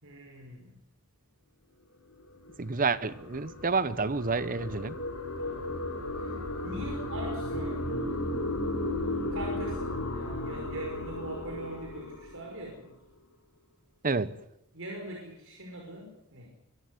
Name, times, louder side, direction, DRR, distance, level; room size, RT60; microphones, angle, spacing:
voice 1, 0.0-0.7 5.4-5.8 6.2-6.3 6.6-7.9 9.3-12.9 14.7-16.5, right 1 dB, 60° right, 1 dB, 5.6 m, -41 dB
sound 1, 2.2-12.8, left 1 dB, 85° left, 6.9 m, -35 dB
voice 2, 2.6-4.9 14.0-14.3, right 4 dB, 40° right, 16 dB, 1.0 m, -29 dB
25.0 x 14.5 x 9.7 m, 0.78 s
head